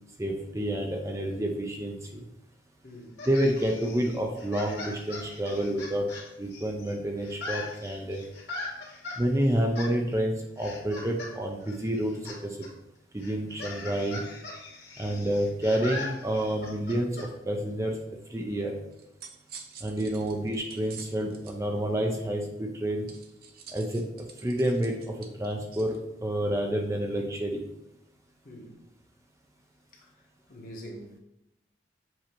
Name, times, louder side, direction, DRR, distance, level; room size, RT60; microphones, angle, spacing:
voice 1, 0.2-2.3 3.3-6.1 6.4-8.2 9.2-12.1 12.4-12.6 13.1-14.2 15.0-18.0 18.3-18.7 19.8-23.1 23.7-24.0 24.4-25.0 25.4-25.9 26.2-27.6, right 1 dB, 15° right, 2 dB, 0.6 m, -29 dB
voice 2, 2.8-3.2 20.2-20.4 28.4-28.8 29.9-30.1 30.5-31.2, equal, 50° left, -1 dB, 1.3 m, -45 dB
sound 1, 3.2-6.9 7.2-9.2 9.7-9.9 10.6-11.3 11.6-12.4 12.6-12.7 13.2-17.3, left 3 dB, 70° left, 2.3 m, -40 dB
sound 2, 18.9-21.6 23.1-26.0, right 6 dB, 55° right, 0.7 m, -47 dB
7.5 x 2.8 x 4.4 m, 0.89 s
head